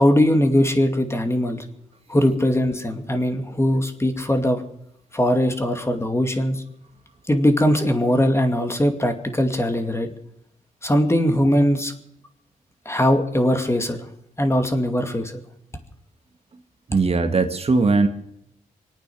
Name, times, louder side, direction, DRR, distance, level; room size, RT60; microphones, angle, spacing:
voice 1, 0.0-1.6 2.1-4.6 5.1-6.6 7.3-10.1 10.8-11.9 12.9-14.0 14.4-15.4, equal, 15° left, 6 dB, 2.4 m, -20 dB
voice 2, 16.9-18.1, right 3 dB, 40° right, 7 dB, 1.7 m, -19 dB
24.5 x 9.1 x 6.3 m, 0.75 s
cardioid pair, 70°, 15 cm